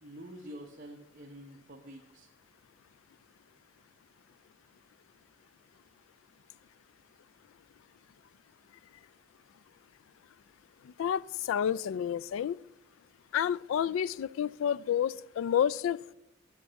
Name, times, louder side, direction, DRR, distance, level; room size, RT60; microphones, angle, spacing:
voice 1, 0.0-2.3, equal, 45° right, 1.1 m, -47 dB
voice 2, 11.0-12.6 13.3-16.1, left 9 dB, 80° left, 0.3 m, -30 dB
9.7 x 7.4 x 7.0 m
head